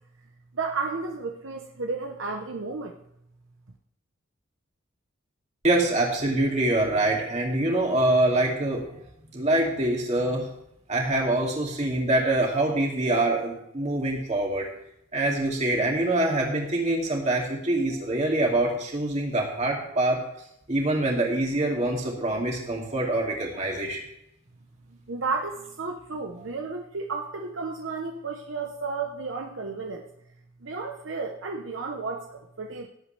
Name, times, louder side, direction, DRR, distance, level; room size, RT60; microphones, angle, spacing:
voice 1, 0.5-3.0 25.1-30.0 30.6-32.9, right 4 dB, 70° right, 3 dB, 0.9 m, -32 dB
voice 2, 5.6-8.9 9.3-10.5 10.9-14.7 15.1-20.2 20.7-24.0, right 2 dB, 35° right, -1 dB, 2.5 m, -25 dB
17.5 x 8.3 x 3.3 m, 0.77 s
head